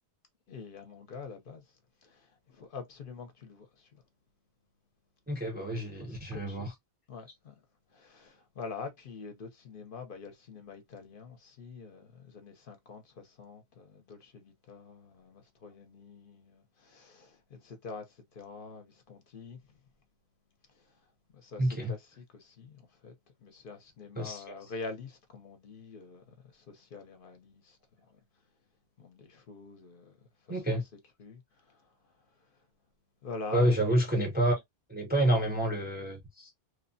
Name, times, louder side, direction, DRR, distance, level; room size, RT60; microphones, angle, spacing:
voice 1, 0.5-1.6 2.0-4.0 6.0-6.7 7.1-7.5 7.9-19.6 20.8-20.9 21.3-23.1 23.4-27.8 28.1-28.2 29.0-30.2 30.5-30.9 31.2-31.8 33.2-34.0, left 4 dB, 60° left, 0.7 m, -46 dB
voice 2, 5.3-6.7 21.6-21.9 24.2-24.6 30.5-30.8 33.5-34.6 34.9-36.5, right 1 dB, 10° right, 0.5 m, -28 dB
3.1 x 2.0 x 2.5 m
omnidirectional pair, 1.1 m